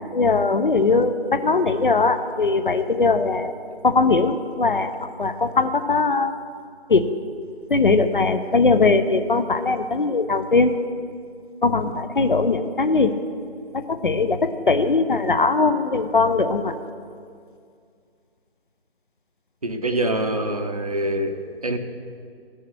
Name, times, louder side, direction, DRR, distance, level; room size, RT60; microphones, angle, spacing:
voice 1, 0.1-3.5 3.8-6.3 6.9-7.1 7.7-10.7 11.6-13.1 13.7-16.8, left 3 dB, 50° left, 10 dB, 0.7 m, -20 dB
voice 2, 19.6-21.8, right 1 dB, 35° right, 6 dB, 0.7 m, -25 dB
13.5 x 6.5 x 6.3 m, 2.2 s
figure-of-eight pair, 155°, 32 cm